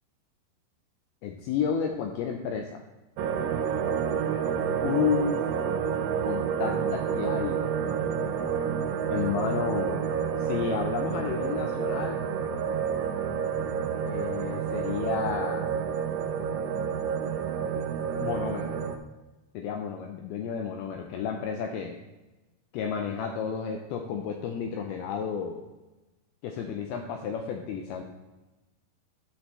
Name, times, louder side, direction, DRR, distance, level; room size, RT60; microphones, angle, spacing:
voice 1, 1.2-2.8 4.8-5.5 6.2-7.6 9.1-10.1 10.4-12.2 14.1-15.6 18.2-18.7 19.5-22.0 22.7-25.7 26.4-28.0, left 7 dB, 80° left, 3 dB, 2.4 m, -31 dB
sound 1, 3.2-19.0, right 7 dB, 80° right, 2.0 m, -29 dB
11.5 x 6.3 x 3.2 m, 1.1 s
omnidirectional pair, 4.6 m